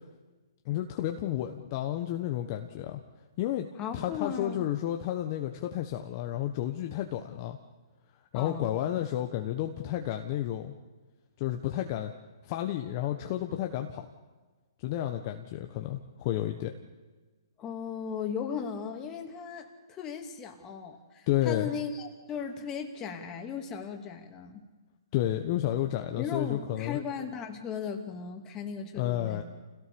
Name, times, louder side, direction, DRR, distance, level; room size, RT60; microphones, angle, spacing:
voice 1, 0.6-3.0 3.4-3.7 3.9-7.6 8.3-10.7 11.4-12.1 12.4-14.1 14.8-16.8 21.3-21.7 25.1-27.0 28.9-29.4, left 12 dB, 40° left, 5 dB, 1.4 m, -31 dB
voice 2, 3.8-4.7 8.3-8.7 17.6-24.6 26.2-29.4, left 6 dB, 20° left, 4 dB, 2.7 m, -37 dB
29.0 x 17.0 x 7.1 m, 1.3 s
hypercardioid pair, 135°, 3 cm